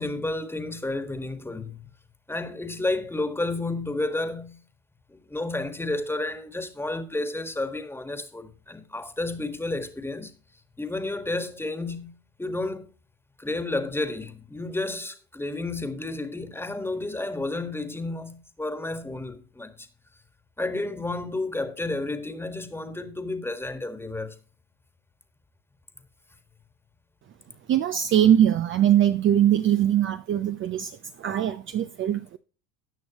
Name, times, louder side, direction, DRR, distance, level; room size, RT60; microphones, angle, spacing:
voice 1, 0.0-1.8 2.3-4.6 5.1-10.3 10.8-12.1 12.4-12.9 13.4-19.9 20.6-24.4, left 2 dB, 5° left, 1.6 m, -31 dB
voice 2, 27.7-32.4, right 10 dB, 30° right, 0.6 m, -22 dB
18.5 x 6.3 x 2.9 m
supercardioid pair, 120°, 40 cm